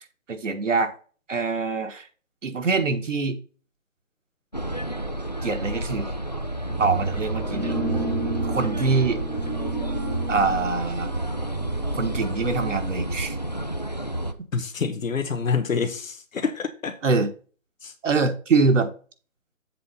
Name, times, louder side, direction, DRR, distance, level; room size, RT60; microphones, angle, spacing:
voice 1, 0.3-0.9 1.3-2.1 2.4-3.4 5.4-6.1 6.8-7.7 8.4-9.2 10.3-11.1 11.9-13.3 17.0-17.3 18.0-18.9, right 4 dB, 70° right, 1.4 m, -24 dB
sound 1, 4.5-14.3, right 1 dB, 35° left, 0.4 m, -31 dB
sound 2, 6.7-13.2, right 3 dB, 10° right, 0.9 m, -30 dB
voice 2, 14.5-17.0 17.8-17.9, left 5 dB, 90° left, 1.3 m, -27 dB
7.7 x 4.0 x 5.5 m
hypercardioid pair, 175°, 39 cm